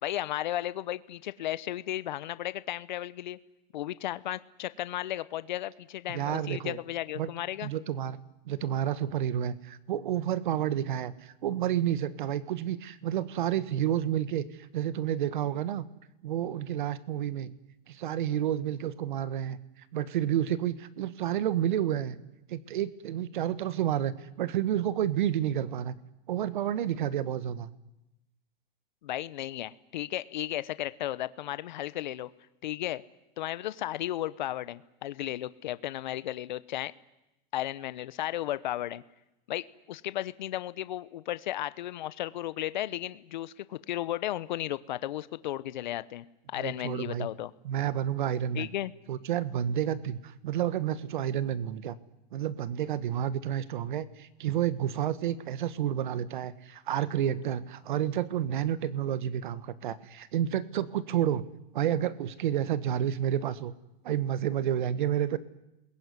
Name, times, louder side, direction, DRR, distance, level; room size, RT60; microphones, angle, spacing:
voice 1, 0.0-3.4 3.7-7.7 29.0-32.3 32.6-33.0 33.4-36.9 37.5-39.0 39.5-47.5 48.5-48.9, left 13 dB, 50° left, 16 dB, 1.0 m, -34 dB
voice 2, 6.1-6.8 7.1-7.3 7.6-8.2 8.4-14.4 14.7-15.8 16.2-17.5 17.9-19.6 19.9-22.2 22.5-25.9 26.3-27.7 46.6-47.3 47.6-48.7 49.1-51.9 52.3-61.4 61.7-63.7 64.0-65.4, right 10 dB, 55° right, 17 dB, 1.5 m, -30 dB
28.5 x 21.5 x 9.7 m, 0.93 s
supercardioid pair, 180°, 29 cm